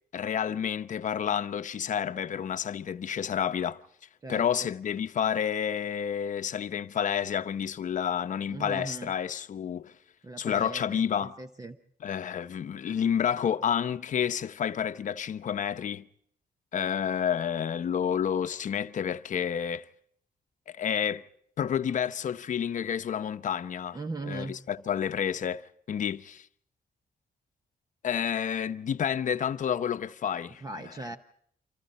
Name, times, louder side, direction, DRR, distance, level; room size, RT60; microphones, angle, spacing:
voice 1, 0.1-3.8 4.3-9.9 10.4-11.4 12.0-16.0 16.7-19.9 20.7-21.2 21.6-24.0 24.3-26.5 28.0-30.6, left 8 dB, 50° left, 0.8 m, -30 dB
voice 2, 4.2-4.7 8.5-9.1 10.2-11.8 23.9-24.6 30.5-31.2, right 3 dB, 20° right, 0.9 m, -39 dB
29.0 x 26.0 x 4.2 m
wide cardioid pair, 150°, 16 cm